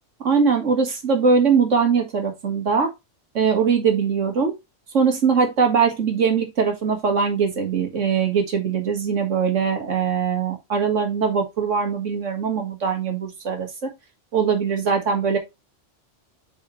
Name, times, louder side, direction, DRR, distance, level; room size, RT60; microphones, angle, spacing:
voice 1, 0.2-2.9 3.3-4.5 4.9-13.7 14.3-15.4, right 6 dB, 80° right, 2.0 m, -21 dB
8.1 x 4.1 x 3.1 m
omnidirectional pair, 1.2 m